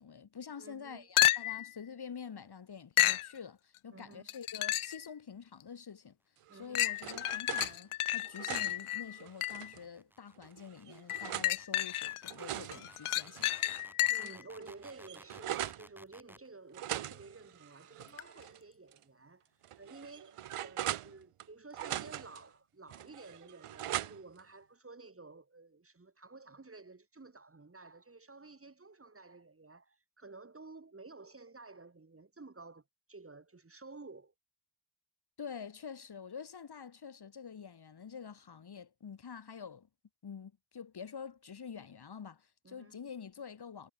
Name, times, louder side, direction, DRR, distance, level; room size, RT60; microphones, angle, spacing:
voice 1, 0.0-6.2 6.5-13.5 35.4-39.9 40.2-43.9, left 6 dB, 50° left, 1.6 m, -47 dB
voice 2, 0.6-1.1 3.9-4.3 6.5-6.8 14.1-19.5 19.8-32.8 33.1-34.3 42.6-43.0, right 3 dB, 25° right, 2.5 m, -52 dB
sound 1, 1.2-1.7 3.0-3.3 4.3-5.0 5.6-5.7 6.7-9.7 11.1-12.3 12.7-14.4 18.2-18.3, left 15 dB, 80° left, 0.6 m, -31 dB
sound 2, 6.5-7.8 8.2-9.8 10.4-11.5 12.1-13.9 14.2-14.3 14.6-15.9 16.7-18.6 18.9-19.0 19.6-21.5 21.7-22.4 22.9-24.4, right 12 dB, 90° right, 0.9 m, -41 dB
sound 3, 7.8-16.5, equal, 5° right, 3.6 m, -58 dB
wide cardioid pair, 105°, 50 cm